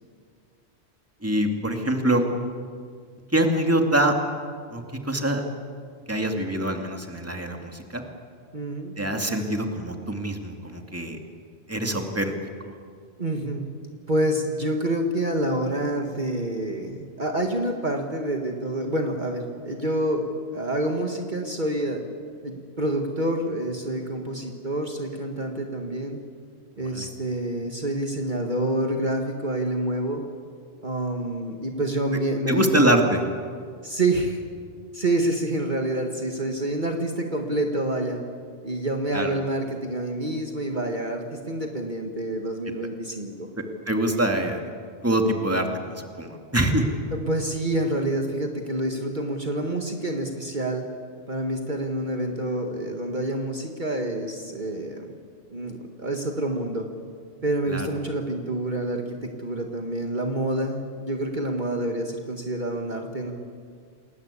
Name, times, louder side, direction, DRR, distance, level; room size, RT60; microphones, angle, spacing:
voice 1, 1.2-2.2 3.3-4.1 4.7-5.4 6.1-8.0 9.0-11.2 11.7-12.3 12.6-12.7 26.8-27.1 32.5-33.2 39.1-39.3 43.9-44.7 45.0-45.7 46.2-46.9 57.7-57.9, right 1 dB, 10° right, 3 dB, 2.4 m, -24 dB
voice 2, 8.5-9.0 13.2-13.7 14.1-22.0 22.4-26.2 26.8-30.2 30.8-32.9 33.8-34.4 34.9-38.2 38.6-43.5 47.1-50.9 51.3-55.2 55.5-56.9 57.4-63.3, right 1 dB, 45° right, 3 dB, 2.0 m, -27 dB
28.5 x 20.5 x 8.5 m, 2.1 s
omnidirectional pair, 1.1 m